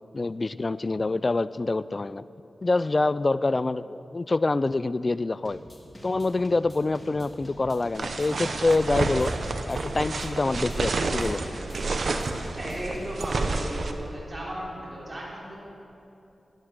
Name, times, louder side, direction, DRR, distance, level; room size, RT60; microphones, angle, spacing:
voice 1, 0.1-2.2 2.6-5.6 6.0-9.3 9.7-11.4, left 3 dB, 40° left, 16 dB, 0.3 m, -26 dB
sound 1, 5.4-13.4, equal, 20° left, 2.8 m, -47 dB
sound 2, 7.9-13.9, right 3 dB, 70° right, 0.9 m, -29 dB
voice 2, 12.6-15.6, right 1 dB, 35° right, -5 dB, 3.4 m, -35 dB
12.5 x 10.0 x 6.6 m, 2.8 s
cardioid pair, 60°, 0 cm